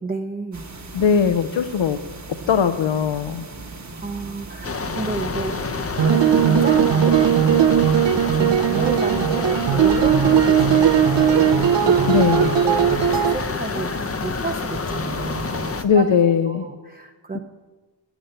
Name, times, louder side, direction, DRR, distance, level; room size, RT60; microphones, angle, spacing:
voice 1, 0.0-0.7 4.0-5.8 6.0-8.0 8.4-12.1 12.6-13.9 14.2-16.1 16.4-17.4, right 3 dB, 20° right, 4 dB, 0.5 m, -31 dB
sound 1, 0.5-15.8, right 2 dB, 40° right, 1.0 m, -38 dB
voice 2, 0.9-2.0 2.5-3.4 12.1-12.5 15.8-16.6 17.3-17.4, left 7 dB, 85° left, 9 dB, 0.6 m, -19 dB
sound 2, 4.6-15.8, left 4 dB, 35° left, 0.5 m, -28 dB
sound 3, 6.0-13.4, right 9 dB, 70° right, 0.5 m, -18 dB
9.1 x 6.8 x 7.7 m, 1.3 s
wide cardioid pair, 65°, 44 cm